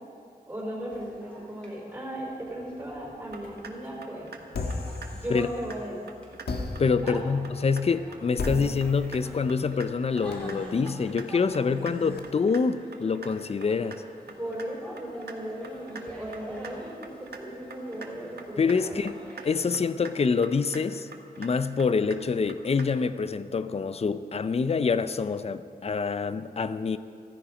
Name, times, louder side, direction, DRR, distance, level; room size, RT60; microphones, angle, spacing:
voice 1, 0.5-4.3 5.1-6.0 7.0-7.2 14.4-19.0, right 1 dB, 10° right, -3 dB, 3.9 m, -36 dB
sound 1, 0.8-19.5, equal, 5° left, 3.3 m, -49 dB
sound 2, 3.3-3.7 4.0-4.4 4.7-5.1 5.4-5.8 6.1-6.5 6.8-7.2 7.4-7.8 8.1-8.5 8.8-9.2 9.5-9.9 10.2-10.6 10.9-11.3 11.5-11.9 12.2-12.6 12.9-13.3 13.6-14.0 14.3-14.7 15.0-15.4 15.6-16.0 16.3-16.7 17.0-17.4 17.7-18.1 18.4-18.8 19.1-19.5 19.7-20.1 20.4-20.8 21.1-21.5 21.8-22.2 22.5-22.9, right 5 dB, 85° right, 1.3 m, -43 dB
sound 3, 4.5-5.9 6.4-12.2, left 2 dB, 80° left, 1.4 m, -37 dB
voice 2, 6.8-14.0 18.6-19.1 19.4-21.1 21.4-27.0, left 5 dB, 40° left, 13 dB, 0.5 m, -26 dB
15.0 x 15.0 x 5.0 m, 2.4 s
wide cardioid pair, 130°, 16 cm